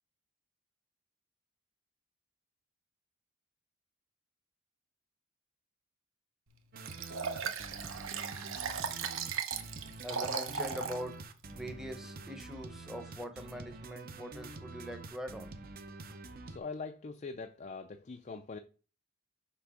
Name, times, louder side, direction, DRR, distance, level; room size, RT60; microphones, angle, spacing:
sound 1, 6.7-16.6, right 2 dB, 40° right, 0.6 m, -47 dB
Liquid, 6.8-11.0 11.5-11.6, right 6 dB, 70° right, 0.9 m, -37 dB
voice 1, 10.0-11.2 11.5-15.5, equal, ahead, 0.8 m, -43 dB
voice 2, 16.5-18.6, left 4 dB, 35° left, 0.4 m, -43 dB
5.9 x 5.4 x 4.9 m
head